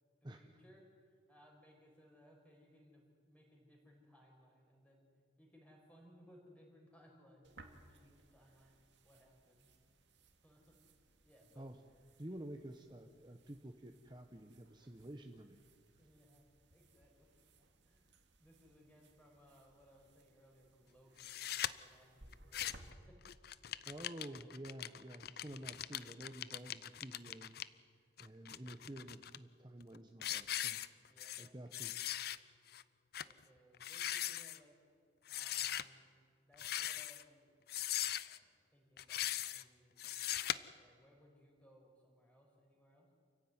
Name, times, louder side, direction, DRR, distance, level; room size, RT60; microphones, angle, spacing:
voice 1, 0.4-5.1 5.4-8.7 9.0-9.8 10.4-10.8 11.2-11.7 16.0-17.3 17.8-22.7 23.1-23.2 31.1-31.6 33.1-34.8 35.3-36.1 36.4-37.5 38.1-43.1, equal, 5° left, -1 dB, 5.5 m, -65 dB
sound 1, 7.4-22.9, right 2 dB, 75° right, 2.3 m, -64 dB
voice 2, 12.2-15.6 23.9-27.6 28.2-30.8 31.4-31.9, right 1 dB, 25° right, 5 dB, 1.0 m, -50 dB
sound 2, 21.2-21.7 22.3-22.9 23.2-27.6 28.2-29.4 29.8-30.0 30.2-31.5 31.7-32.4 32.7-32.8 33.1-33.3 33.7-34.6 35.3-35.8 36.5-37.2 37.7-38.4 39.0-39.6 40.0-40.6, left 12 dB, 55° left, 0.6 m, -40 dB
28.5 x 15.5 x 9.6 m, 2.1 s
head